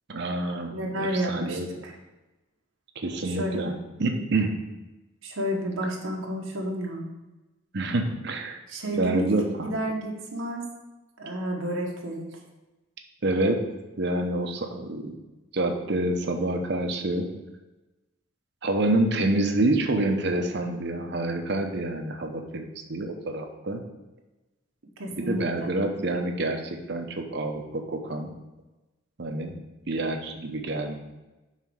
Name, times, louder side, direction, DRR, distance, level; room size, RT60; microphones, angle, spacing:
voice 1, 0.1-1.7 3.0-3.7 4.0-4.6 7.7-8.6 8.9-9.7 13.2-13.7 14.0-15.2 15.5-17.3 18.6-23.8 25.1-28.3 29.2-29.6 29.9-31.0, right 2 dB, 55° right, 4 dB, 0.8 m, -27 dB
voice 2, 0.7-1.9 3.2-3.8 5.2-7.1 8.7-10.7 11.2-12.3 25.0-25.7, right 1 dB, 90° right, -1 dB, 1.3 m, -31 dB
5.7 x 4.0 x 6.2 m, 1.1 s
head